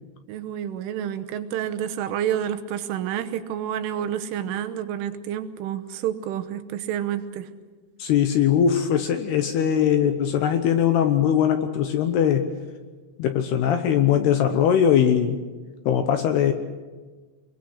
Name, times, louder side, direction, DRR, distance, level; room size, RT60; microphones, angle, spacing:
voice 1, 0.3-7.5, right 10 dB, 80° right, 9 dB, 3.5 m, -29 dB
voice 2, 8.0-12.5 13.2-15.4 15.9-16.5, left 9 dB, 75° left, 7 dB, 2.6 m, -20 dB
24.5 x 22.0 x 6.5 m, 1.3 s
omnidirectional pair, 5.6 m